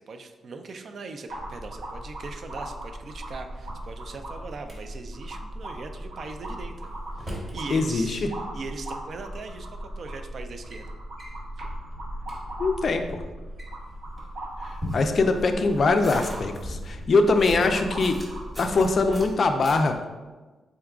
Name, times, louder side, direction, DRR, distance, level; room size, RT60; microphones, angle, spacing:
voice 1, 0.0-6.9 7.2-8.3 8.5-10.9 15.0-15.2, right 4 dB, 55° right, 7 dB, 0.3 m, -40 dB
sound 1, 1.3-19.3, right 1 dB, 90° right, 0.7 m, -38 dB
Drawer open or close, 3.4-4.8 6.4-7.6 8.9-9.0 9.8-10.1 10.4-10.8 11.2-11.4 11.9-12.0 12.2-12.4 13.4-15.4 16.5-17.8, equal, 30° right, 1.0 m, -39 dB
voice 2, 7.7-8.3 12.6-13.2 14.6-18.2 18.6-20.0, left 3 dB, 50° left, 6 dB, 0.3 m, -22 dB
sound 2, 14.7-20.0, equal, 10° right, 0.8 m, -45 dB
3.7 x 3.5 x 2.3 m, 1.3 s
cardioid pair, 110°, 0 cm